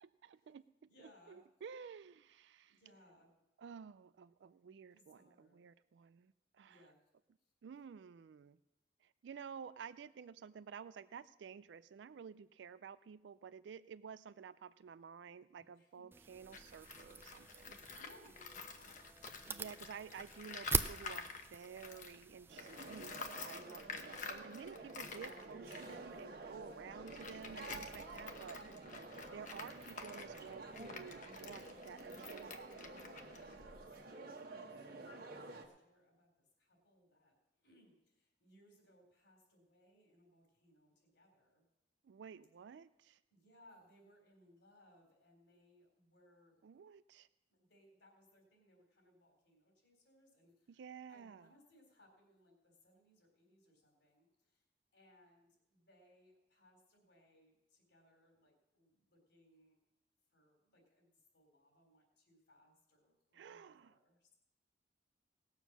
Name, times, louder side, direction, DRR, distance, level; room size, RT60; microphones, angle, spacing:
voice 1, 0.0-0.7 1.3-2.8 3.6-6.8 7.6-8.6 9.0-17.8 19.5-28.6 29.3-32.6 42.0-43.2 46.6-47.3 50.7-51.4 63.3-64.0, right 6 dB, 85° right, 15 dB, 0.4 m, -52 dB
voice 2, 0.8-1.4 2.6-3.3 4.6-5.6 6.6-7.0 7.4-7.5 15.7-16.2 17.9-19.3 20.1-20.2 26.5-26.9 28.6-28.8 33.4-41.7 43.3-46.7 47.5-54.6 54.9-59.8 60.3-64.3, equal, 80° left, 1 dB, 4.0 m, -68 dB
sound 1, 16.1-23.3, right 4 dB, 15° right, 0.4 m, -43 dB
Tools, 16.4-22.2 22.5-34.0, left 5 dB, 45° left, 1.0 m, -50 dB
sound 2, 22.5-35.7, right 3 dB, 55° right, 1.4 m, -51 dB
18.0 x 7.2 x 6.1 m, 0.91 s
head